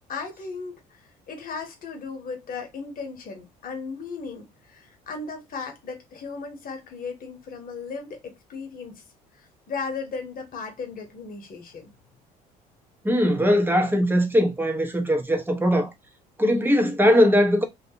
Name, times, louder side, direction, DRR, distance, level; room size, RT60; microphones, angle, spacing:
voice 1, 0.1-9.0 9.4-11.9, left 4 dB, 45° left, 1.1 m, -36 dB
voice 2, 13.0-15.9 16.4-17.6, equal, 10° right, 0.9 m, -20 dB
2.5 x 2.3 x 2.8 m
hypercardioid pair, 60°, 20 cm